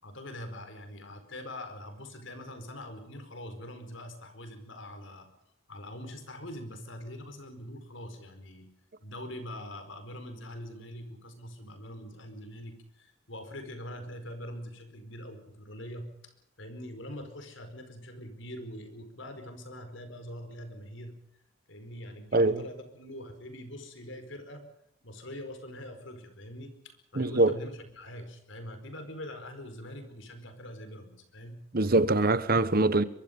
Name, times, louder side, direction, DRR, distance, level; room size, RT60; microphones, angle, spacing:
voice 1, 0.0-5.3 5.7-8.7 9.0-21.1 21.7-24.6 25.0-31.6, left 1 dB, 70° left, 4.7 m, -43 dB
voice 2, 22.3-22.6 27.2-27.6 31.7-33.0, right 2 dB, 45° right, 1.1 m, -23 dB
23.5 x 23.5 x 5.3 m
head